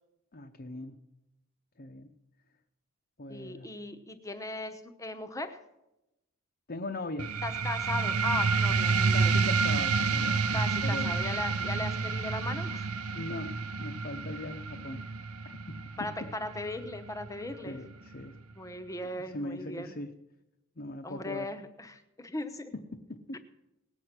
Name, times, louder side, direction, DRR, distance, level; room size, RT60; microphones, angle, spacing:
voice 1, 0.3-1.0 1.8-2.1 3.2-3.7 6.7-7.3 9.1-11.1 13.1-15.1 15.4-16.3 17.6-18.4 19.1-20.1 20.8-21.5 22.7-23.4, left 2 dB, 40° left, 5 dB, 0.8 m, -40 dB
voice 2, 3.3-5.6 7.4-9.4 10.5-12.9 16.0-17.8 18.6-20.0 21.0-22.7 23.3-23.4, left 2 dB, 15° left, 9 dB, 0.9 m, -38 dB
sound 1, 7.2-18.2, right 4 dB, 85° right, 0.8 m, -29 dB
19.0 x 8.0 x 6.0 m, 0.92 s
head